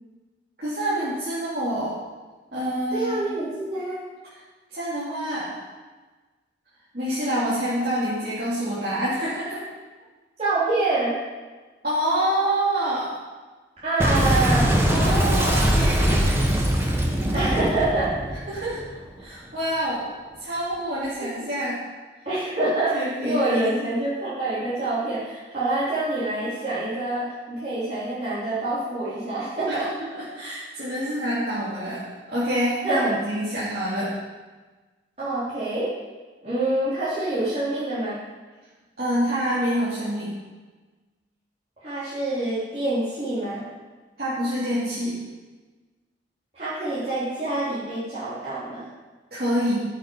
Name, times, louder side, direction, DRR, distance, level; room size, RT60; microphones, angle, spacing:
voice 1, 0.6-2.0 2.5-3.3 4.7-5.6 6.9-9.6 11.8-13.1 14.9-16.3 17.3-17.7 18.5-18.8 19.2-20.1 20.4-21.8 22.9-23.8 29.7-29.8 30.1-32.0 32.3-34.1 39.0-40.3 44.2-45.2 49.3-49.8, right 1 dB, 50° right, -11 dB, 3.2 m, -26 dB
voice 2, 2.9-4.0 10.4-11.1 13.8-14.7 17.3-18.0 18.3-18.4 21.2-21.3 22.3-29.9 32.8-33.1 35.2-35.9 36.4-38.2 41.8-43.6 46.5-48.8, right 2 dB, 35° right, -12 dB, 3.7 m, -26 dB
Boom, 14.0-19.2, equal, 15° right, 1.1 m, -21 dB
15.0 x 6.8 x 5.5 m, 1.3 s
head